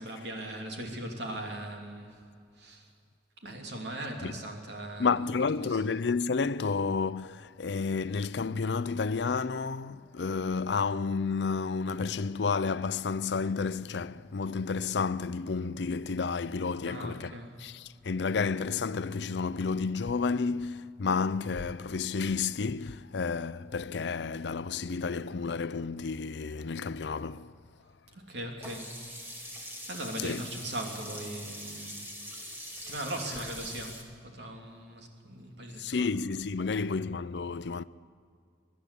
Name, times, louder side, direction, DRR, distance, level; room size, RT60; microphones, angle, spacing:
voice 1, 0.0-2.1 2.6-2.9 3.4-5.1 5.6-5.8 16.8-17.5 28.3-28.9 29.5-32.1 32.4-32.5 32.9-36.1, right 1 dB, 75° right, 3.2 m, -39 dB
voice 2, 5.0-27.5 30.2-30.4 35.8-37.8, left 4 dB, 80° left, 0.5 m, -31 dB
Sink (filling or washing), 28.6-34.0, equal, 10° right, 2.1 m, -43 dB
23.0 x 11.5 x 10.0 m
head